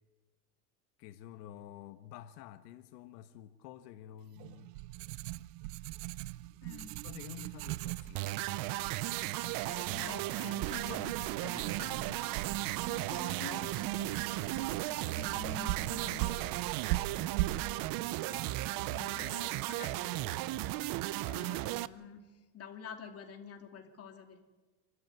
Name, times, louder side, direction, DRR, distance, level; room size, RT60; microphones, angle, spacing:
voice 1, 1.0-4.7 7.0-9.2 10.0-12.3 17.1-18.5, left 12 dB, 90° left, 1.3 m, -51 dB
Writing, 4.4-19.2, right 17 dB, 85° right, 0.7 m, -41 dB
voice 2, 6.6-7.0 9.4-11.1 12.8-16.6 17.1-18.0 18.3-18.5 18.9-20.4 20.9-21.0 21.3-24.4, left 6 dB, 30° left, 2.7 m, -49 dB
sound 1, 8.1-21.9, right 17 dB, 45° right, 0.6 m, -35 dB
27.0 x 13.0 x 9.4 m
cardioid pair, 150°, 47 cm